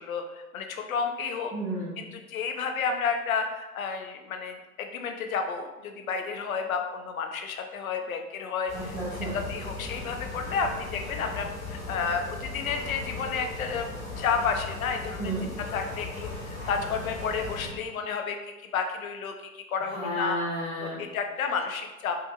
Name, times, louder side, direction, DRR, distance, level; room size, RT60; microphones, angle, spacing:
voice 1, 0.0-1.5 2.0-9.0 9.5-15.3 15.7-18.4 18.7-20.4 21.0-22.1, left 5 dB, 65° left, 5 dB, 0.6 m, -31 dB
voice 2, 1.5-2.0 8.7-9.3 15.2-15.5 19.9-21.0, right 1 dB, 10° right, -9 dB, 0.3 m, -32 dB
sound 1, 8.7-17.7, left 3 dB, 15° left, 0.9 m, -38 dB
4.5 x 2.6 x 2.3 m, 1.0 s
figure-of-eight pair, 100°, 45 cm